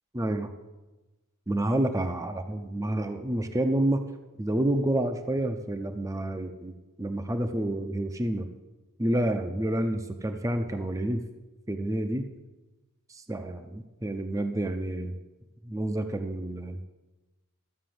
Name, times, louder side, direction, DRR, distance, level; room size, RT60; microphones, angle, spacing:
voice 1, 0.1-0.5 1.5-4.0 4.4-6.7 7.0-8.5 9.0-11.2 11.7-12.3 13.1-15.1 15.6-16.8, right 1 dB, 15° right, 7 dB, 0.6 m, -29 dB
13.5 x 6.1 x 7.7 m, 1.1 s
head